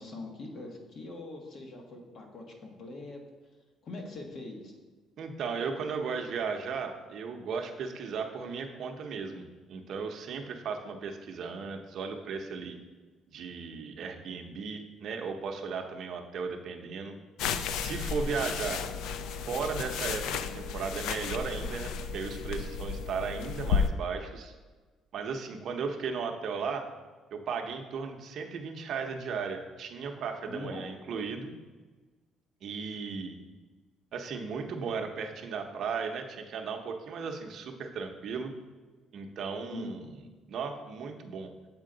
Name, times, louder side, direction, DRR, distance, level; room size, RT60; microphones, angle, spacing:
voice 1, 0.0-3.2 3.8-4.7 30.5-30.8 31.1-31.2 39.7-40.1, left 2 dB, 45° left, 2 dB, 1.1 m, -42 dB
voice 2, 5.2-12.8 13.3-17.1 17.7-18.8 19.5-24.5 25.1-26.9 27.3-31.5 32.6-33.4 34.1-38.5 39.1-40.2 40.5-41.5, right 5 dB, 55° right, 4 dB, 0.6 m, -36 dB
sound 1, 17.4-23.9, left 6 dB, 80° left, 0.3 m, -33 dB
7.5 x 4.4 x 3.8 m, 1.3 s
cardioid pair, 150°, 0 cm